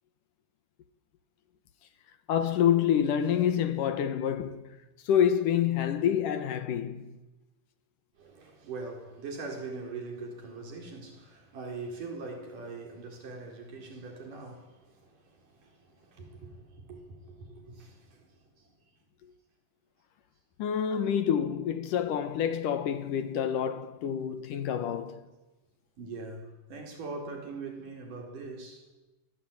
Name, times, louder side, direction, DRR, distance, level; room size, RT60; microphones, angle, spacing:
voice 1, 2.3-4.8 5.0-7.2 20.6-25.3, left 9 dB, 70° left, 2.8 m, -27 dB
voice 2, 8.2-18.7 26.0-28.9, right 3 dB, 65° right, 5.9 m, -42 dB
28.5 x 23.0 x 8.8 m
omnidirectional pair, 4.1 m